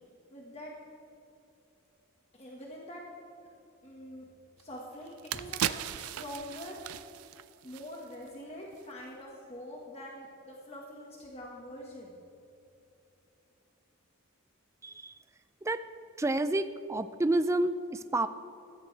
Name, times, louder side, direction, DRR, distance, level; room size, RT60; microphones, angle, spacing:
voice 1, 0.3-0.7 2.3-3.0 3.8-4.2 4.6-6.8 7.6-12.1, equal, 30° left, -3 dB, 1.6 m, -44 dB
sound 1, 4.6-4.7 5.1-8.3 8.7-8.8, right 10 dB, 90° right, 0.4 m, -37 dB
voice 2, 14.8-15.2 15.6-15.8 16.2-18.3, right 2 dB, 15° right, 11 dB, 0.4 m, -29 dB
15.5 x 14.0 x 3.4 m, 2.8 s
head